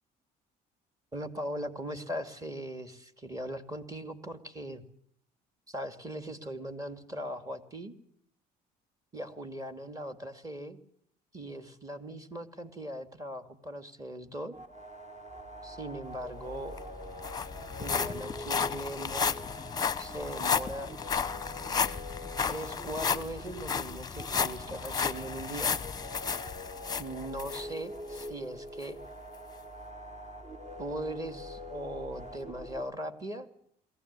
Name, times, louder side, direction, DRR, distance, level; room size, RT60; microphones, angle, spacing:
voice 1, 1.1-4.8 5.7-7.9 9.1-10.8 11.3-14.6 15.6-16.8 17.8-19.3 20.0-20.9 22.5-25.7 27.0-29.0 30.8-33.5, right 1 dB, 20° right, 9 dB, 2.3 m, -39 dB
sound 1, 14.5-32.8, equal, 45° right, 3.6 m, -44 dB
sound 2, 16.4-16.5 16.8-27.6 28.1-28.3 28.8-28.9, left 6 dB, 25° left, 0.8 m, -33 dB
22.5 x 15.5 x 9.6 m, 0.67 s
cardioid pair, 110°, 17 cm